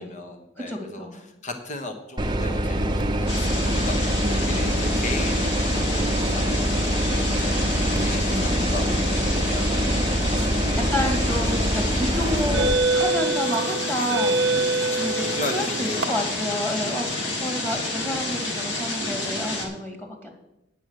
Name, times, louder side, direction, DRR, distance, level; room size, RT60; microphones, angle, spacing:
voice 1, 0.0-7.1 7.4-7.7 8.0-10.0 10.4-10.9 14.8-16.3 17.2-17.3, left 2 dB, 40° left, 5 dB, 1.2 m, -37 dB
voice 2, 0.7-1.2 4.2-4.8 8.3-9.3 10.5-12.7 12.9-14.3 15.0-20.3, left 1 dB, 10° left, 2 dB, 2.1 m, -30 dB
sound 1, 2.2-12.7, equal, 25° right, 0.8 m, -24 dB
sound 2, 3.3-19.7, left 2 dB, 70° left, 2.1 m, -30 dB
sound 3, 11.3-11.5 12.3-16.1, right 3 dB, 70° right, 0.8 m, -25 dB
9.1 x 7.6 x 6.5 m, 0.86 s
head